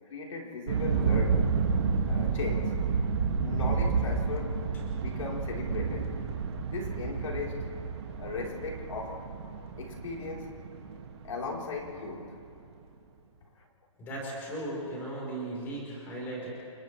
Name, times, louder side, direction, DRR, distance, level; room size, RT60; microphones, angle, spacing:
voice 1, 0.0-1.5 2.0-2.8 3.4-4.6 4.9-6.1 6.7-7.6 8.2-9.2 9.8-10.5 11.2-12.3 13.6-13.7, left 4 dB, 75° left, -2 dB, 4.1 m, -37 dB
sound 1, 0.7-12.2, right 5 dB, 55° right, 2.2 m, -30 dB
voice 2, 14.0-16.5, right 1 dB, 10° left, -4 dB, 4.3 m, -37 dB
29.5 x 28.5 x 3.4 m, 2.6 s
hypercardioid pair, 175°, 17 cm